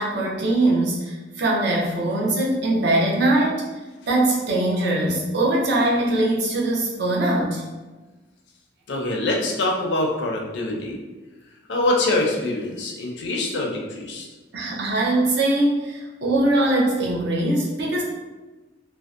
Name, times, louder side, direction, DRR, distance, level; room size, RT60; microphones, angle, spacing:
voice 1, 0.0-3.7 4.1-7.6 14.5-18.0, right 1 dB, 65° right, -3 dB, 0.6 m, -21 dB
voice 2, 8.9-11.0 11.7-14.3, left 2 dB, 65° left, -1 dB, 0.4 m, -24 dB
2.6 x 2.0 x 2.4 m, 1.2 s
head